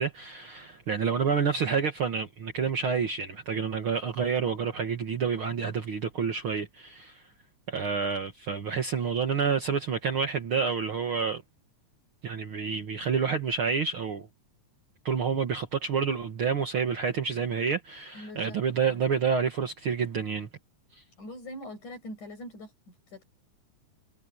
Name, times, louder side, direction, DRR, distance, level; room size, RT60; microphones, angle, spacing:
voice 1, 0.0-7.2 7.7-11.4 12.2-14.3 15.1-20.5 21.0-21.1, right 6 dB, 50° right, 2.1 m, -28 dB
voice 2, 18.1-19.0 21.2-23.2, left 1 dB, 80° left, 8.0 m, -43 dB
omnidirectional pair, 3.5 m